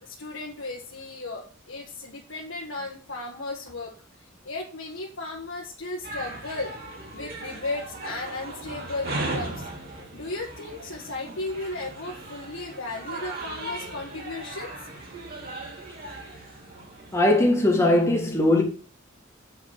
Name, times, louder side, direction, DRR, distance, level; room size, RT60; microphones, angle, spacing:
voice 1, 0.0-3.9 4.4-6.7 7.1-9.7 10.1-14.7, left 2 dB, 75° left, 1.6 m, -35 dB
sound 1, 6.0-17.3, right 2 dB, 45° right, 3.2 m, -37 dB
voice 2, 17.1-18.6, left 1 dB, 15° left, 2.2 m, -20 dB
8.1 x 5.3 x 6.9 m
head